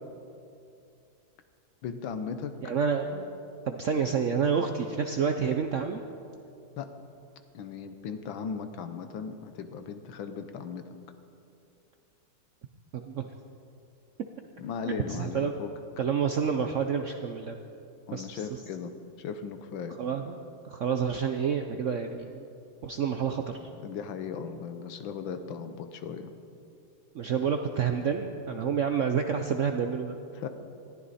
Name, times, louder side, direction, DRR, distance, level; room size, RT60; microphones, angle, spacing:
voice 1, 1.8-2.7 6.8-6.9 7.5-10.9 14.6-15.7 18.1-20.0 23.8-26.3 30.3-30.5, left 6 dB, 85° left, 9 dB, 1.7 m, -37 dB
voice 2, 2.6-3.3 3.7-6.0 12.9-13.3 14.9-15.5 16.0-17.6 18.1-18.6 20.0-20.4 20.6-22.4 22.8-23.7 27.1-30.2, right 6 dB, 70° right, 5 dB, 0.7 m, -29 dB
20.0 x 14.5 x 4.2 m, 2.6 s
omnidirectional pair, 2.1 m